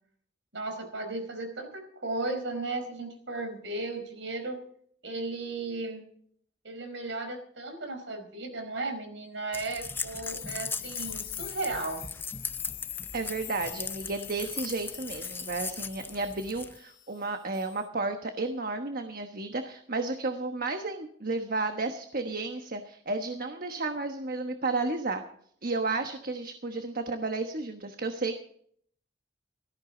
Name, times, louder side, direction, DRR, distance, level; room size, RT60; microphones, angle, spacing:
voice 1, 0.5-4.6 5.0-6.0 6.6-12.1, right 2 dB, 85° right, 6 dB, 4.6 m, -35 dB
sound 1, 9.5-16.8, left 4 dB, 10° left, 0.6 m, -39 dB
sound 2, 9.9-17.2 17.5-17.9, left 13 dB, 55° left, 1.2 m, -43 dB
voice 2, 13.1-25.2 25.6-28.4, right 3 dB, 50° right, 6 dB, 1.2 m, -32 dB
18.0 x 14.5 x 3.9 m, 0.62 s
head